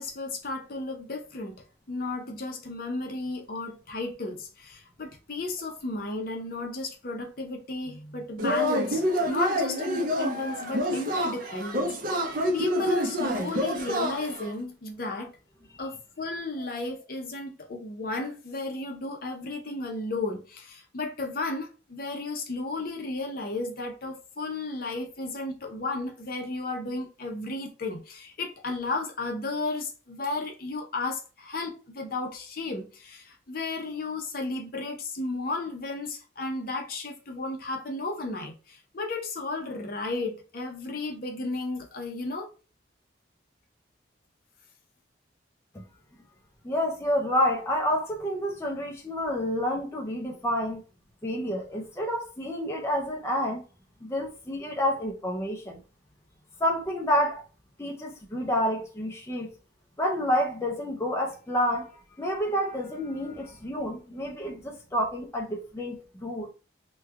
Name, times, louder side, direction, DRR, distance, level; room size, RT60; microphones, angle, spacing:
voice 1, 0.0-1.6 1.9-15.3 15.8-42.5, left 2 dB, 50° left, 0.7 m, -33 dB
Yell / Cheering, 8.4-14.5, equal, 50° right, 0.5 m, -28 dB
voice 2, 46.6-50.8 51.2-53.6 54.0-55.8 56.6-57.4 57.8-59.5 60.0-66.5, equal, 15° left, 0.4 m, -29 dB
3.1 x 2.2 x 3.4 m
head